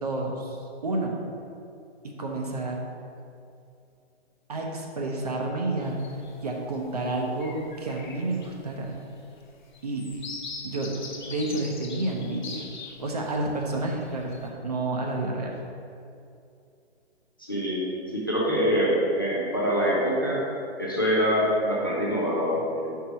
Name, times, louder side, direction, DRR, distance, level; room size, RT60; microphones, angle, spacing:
voice 1, 0.0-1.2 2.0-2.8 4.5-6.0 6.4-8.9 9.8-10.1 10.6-10.9 11.3-12.6 13.0-15.5, right 2 dB, 40° right, 0 dB, 0.7 m, -30 dB
sound 1, 5.8-6.4 6.9-7.1 7.3-13.4 13.8-14.5, left 4 dB, 45° left, 0.9 m, -42 dB
voice 2, 17.4-17.8 18.1-20.4 20.8-23.0, equal, 20° left, -7 dB, 0.4 m, -25 dB
4.6 x 4.6 x 5.2 m, 2.5 s
hypercardioid pair, 175°, 32 cm